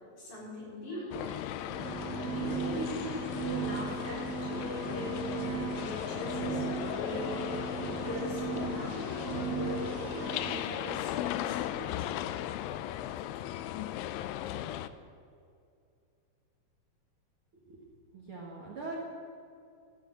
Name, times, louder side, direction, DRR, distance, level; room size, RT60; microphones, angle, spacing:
voice 1, 0.2-1.4 2.2-12.1 13.6-13.9, left 1 dB, 60° left, -6 dB, 5.8 m, -41 dB
sound 1, 1.1-14.9, left 12 dB, 85° left, 2.2 m, -37 dB
sound 2, 1.7-10.8, right 7 dB, 75° right, 2.4 m, -37 dB
voice 2, 18.1-19.0, right 3 dB, 45° right, -3 dB, 2.0 m, -41 dB
14.0 x 9.7 x 7.8 m, 2.4 s
omnidirectional pair, 4.1 m